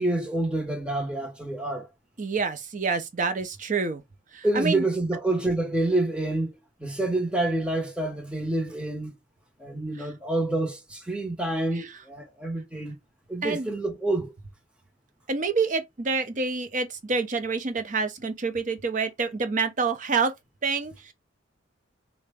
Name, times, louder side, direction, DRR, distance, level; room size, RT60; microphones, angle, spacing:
voice 1, 0.0-1.9 4.4-6.5 6.8-9.2 9.6-13.0 13.3-14.3, right 2 dB, 5° right, 0.7 m, -27 dB
voice 2, 2.2-4.0 4.3-4.8 10.0-10.1 11.8-11.9 13.4-13.7 15.3-20.3 20.6-21.1, right 4 dB, 40° right, 0.6 m, -27 dB
3.7 x 2.1 x 3.3 m
head